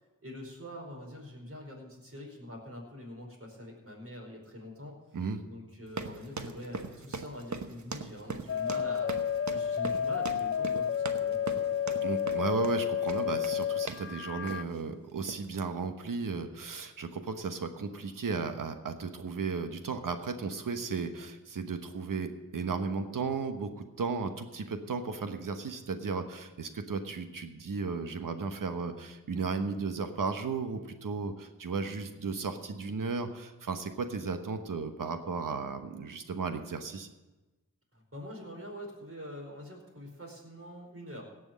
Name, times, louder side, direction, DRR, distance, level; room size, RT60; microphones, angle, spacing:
voice 1, 0.2-4.9 5.5-9.1 9.5-12.1 37.9-41.3, left 1 dB, 45° right, 0 dB, 4.8 m, -44 dB
sound 1, 5.9-14.1 14.5-14.8 15.2-15.5, right 4 dB, 60° right, 1.1 m, -40 dB
sound 2, 8.5-14.6, left 8 dB, 45° left, 0.4 m, -31 dB
voice 2, 12.0-37.1, right 4 dB, 85° right, 7 dB, 1.2 m, -35 dB
17.0 x 6.3 x 7.6 m, 1.1 s
cardioid pair, 40°, 32 cm